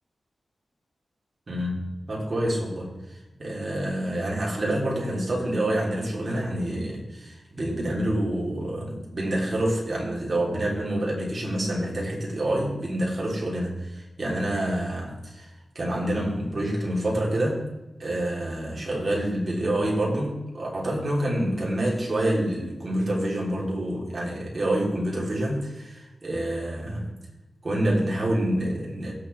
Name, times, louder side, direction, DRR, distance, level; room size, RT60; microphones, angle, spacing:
voice 1, 1.5-2.9 3.4-15.5 15.8-17.7 18.0-27.1 27.6-29.1, right 1 dB, 45° right, -3 dB, 3.6 m, -27 dB
17.5 x 7.1 x 3.5 m, 1.0 s
wide cardioid pair, 100°, 0 cm